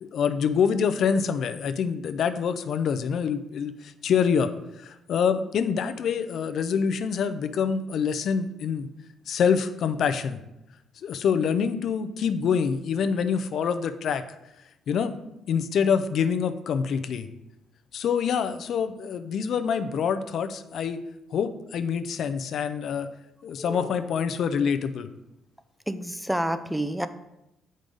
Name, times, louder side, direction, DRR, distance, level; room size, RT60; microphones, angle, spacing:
voice 1, 0.0-8.9 9.3-10.4 11.0-14.2 14.9-15.2 15.5-17.3 17.9-21.0 21.3-23.1 23.4-25.1, left 6 dB, 65° left, 10 dB, 0.5 m, -26 dB
voice 2, 23.6-24.1 25.9-27.1, right 1 dB, 5° right, 11 dB, 0.5 m, -30 dB
7.6 x 5.2 x 3.8 m, 0.89 s
cardioid pair, 90°, 0 cm